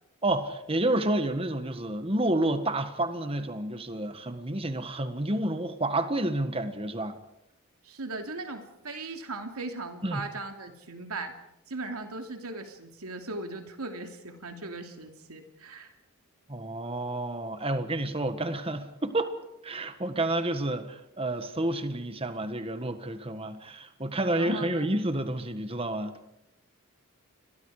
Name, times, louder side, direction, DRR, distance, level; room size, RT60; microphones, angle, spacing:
voice 1, 0.2-7.2 10.0-10.2 16.5-19.3 19.6-26.2, right 1 dB, 25° right, 1.6 m, -30 dB
voice 2, 7.8-11.4 11.7-15.9 24.3-24.9, right 3 dB, 90° right, 2.9 m, -38 dB
29.5 x 23.0 x 5.0 m
head